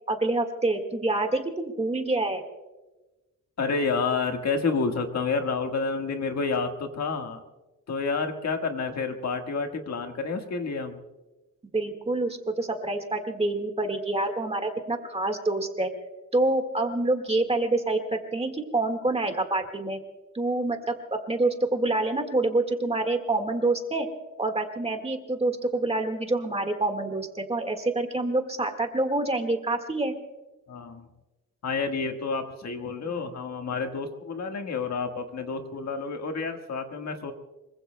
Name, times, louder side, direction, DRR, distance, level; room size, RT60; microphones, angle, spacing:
voice 1, 0.1-2.4 11.7-15.9 16.3-20.0 20.3-24.1 24.4-30.1, right 2 dB, 20° right, 5 dB, 1.7 m, -27 dB
voice 2, 3.6-7.4 7.9-11.0 30.7-31.1 31.6-37.3, left 4 dB, 55° left, 4 dB, 1.6 m, -29 dB
25.5 x 23.5 x 2.2 m, 1.1 s
wide cardioid pair, 160°, 33 cm